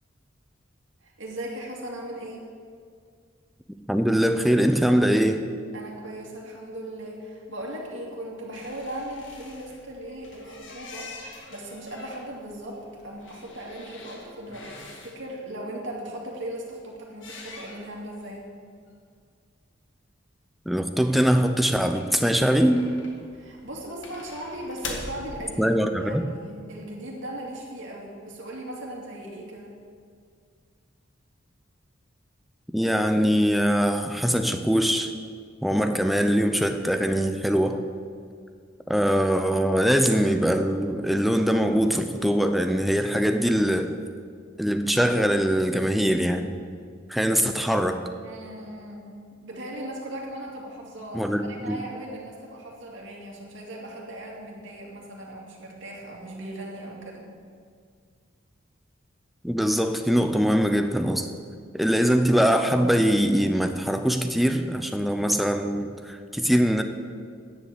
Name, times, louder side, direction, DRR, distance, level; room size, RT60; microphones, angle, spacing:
voice 1, 1.0-2.5 5.7-11.1 11.5-18.5 23.3-29.7 48.2-57.3, right 1 dB, 75° right, -2 dB, 2.6 m, -38 dB
voice 2, 3.9-5.4 20.7-22.8 25.6-26.3 32.7-35.1 35.6-37.8 38.9-44.0 44.6-46.6 47.1-48.0 51.1-51.8 59.4-61.3 61.7-66.8, equal, ahead, 7 dB, 0.6 m, -22 dB
sound 1, 8.5-15.2 17.1-18.2 18.6-18.7 18.9-19.0 21.4-25.2, left 3 dB, 70° left, 1.7 m, -43 dB
10.0 x 7.5 x 8.0 m, 2.1 s
head